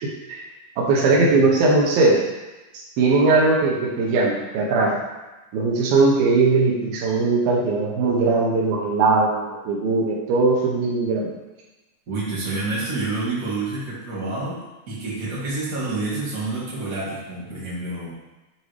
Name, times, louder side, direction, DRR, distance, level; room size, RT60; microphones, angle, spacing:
voice 1, 0.0-0.4 0.8-2.2 3.0-5.0 5.5-11.3, right 3 dB, 85° right, -2 dB, 2.8 m, -19 dB
voice 2, 12.1-18.1, right 3 dB, 30° right, -9 dB, 2.1 m, -28 dB
8.8 x 4.2 x 3.3 m, 1.1 s
omnidirectional pair, 4.1 m